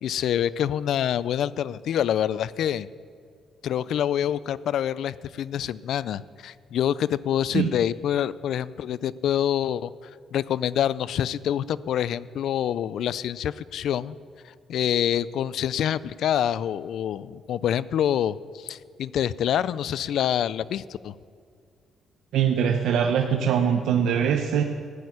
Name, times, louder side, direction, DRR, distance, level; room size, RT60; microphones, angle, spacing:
voice 1, 0.0-2.9 3.6-9.9 10.3-14.2 14.7-21.1, left 10 dB, 75° left, 18 dB, 0.4 m, -26 dB
voice 2, 22.3-24.6, right 8 dB, 80° right, 4 dB, 0.8 m, -22 dB
15.0 x 6.5 x 9.7 m, 2.2 s
cardioid pair, 90°, 0 cm